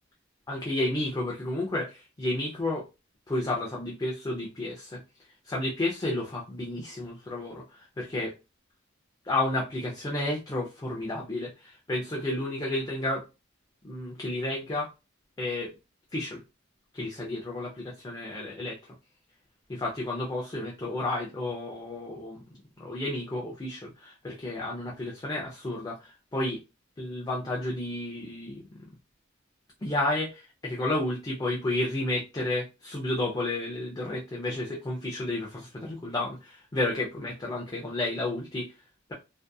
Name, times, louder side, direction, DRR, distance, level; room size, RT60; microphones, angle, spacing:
voice 1, 0.5-2.9 3.3-5.0 5.5-8.3 9.2-13.2 13.8-14.9 15.4-15.7 16.1-16.4 16.9-18.8 19.7-22.4 22.8-26.6 27.0-28.6 29.8-38.7, left 2 dB, 20° left, -2 dB, 0.4 m, -31 dB
2.6 x 2.4 x 2.2 m, 0.28 s
head